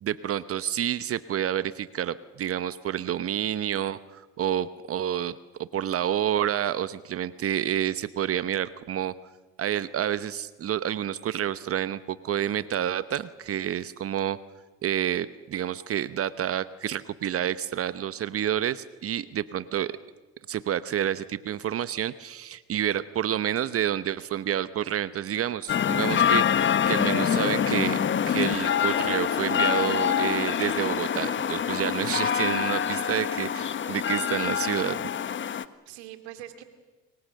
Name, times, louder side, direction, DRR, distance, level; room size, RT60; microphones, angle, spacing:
voice 1, 0.0-5.3 5.6-9.1 9.6-14.4 14.8-19.9 20.5-26.4 26.9-28.0 28.3-35.1, right 10 dB, 45° right, 15 dB, 1.0 m, -29 dB
sound 1, 25.7-35.6, left 8 dB, 35° left, 1.3 m, -25 dB
voice 2, 35.9-36.6, right 12 dB, 80° right, 8 dB, 2.6 m, -45 dB
28.5 x 23.0 x 6.6 m, 1.2 s
hypercardioid pair, 70°, 33 cm